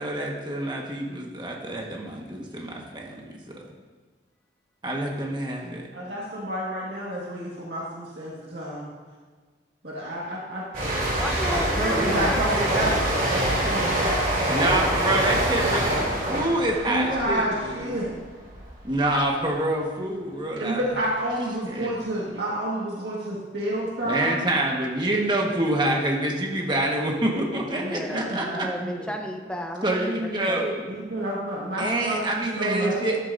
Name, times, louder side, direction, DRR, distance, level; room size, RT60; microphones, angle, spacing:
voice 1, 0.0-3.2 3.5-3.7 4.8-5.8 14.5-18.0 18.8-20.8 21.6-21.9 22.3-22.4 24.0-28.5 29.8-30.8 31.8-33.2, right 1 dB, 25° right, -1 dB, 1.5 m, -26 dB
voice 2, 5.9-8.9 9.8-10.6 11.8-14.0 16.9-18.1 20.6-24.4 27.6-29.1 30.9-33.1, right 1 dB, 70° right, -5 dB, 1.8 m, -29 dB
sound 1, 10.7-18.2 18.5-18.8, right 1 dB, 50° right, 2.8 m, -25 dB
voice 3, 11.1-13.0 27.8-30.7, equal, 5° left, 2 dB, 0.8 m, -33 dB
13.0 x 10.5 x 2.7 m, 1.4 s
head